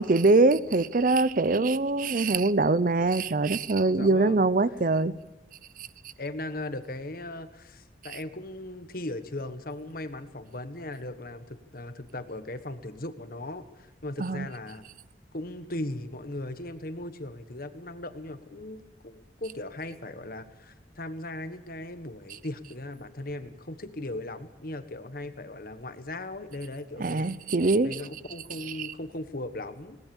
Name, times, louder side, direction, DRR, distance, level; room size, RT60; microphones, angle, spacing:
voice 1, 0.0-5.1 14.2-14.5 27.0-28.0 28.8-28.9, right 3 dB, 45° right, 17 dB, 0.6 m, -23 dB
voice 2, 3.9-4.4 6.2-14.9 15.3-27.3 27.8-30.0, left 1 dB, 50° left, 10 dB, 1.4 m, -38 dB
21.0 x 18.5 x 7.1 m, 1.1 s
head